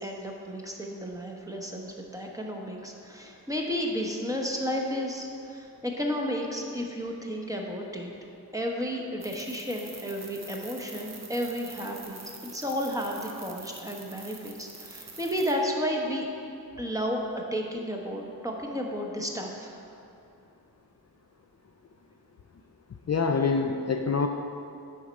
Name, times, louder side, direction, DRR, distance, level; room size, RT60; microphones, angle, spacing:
voice 1, 0.0-8.1 8.5-12.2 12.5-16.3 16.8-17.2 17.5-19.8, equal, 10° right, 0 dB, 1.0 m, -32 dB
sound 1, 9.2-15.5, right 3 dB, 45° right, 0.9 m, -46 dB
voice 2, 23.1-24.3, left 5 dB, 45° left, 4 dB, 0.4 m, -25 dB
8.5 x 4.4 x 5.2 m, 2.6 s
wide cardioid pair, 55°, 38 cm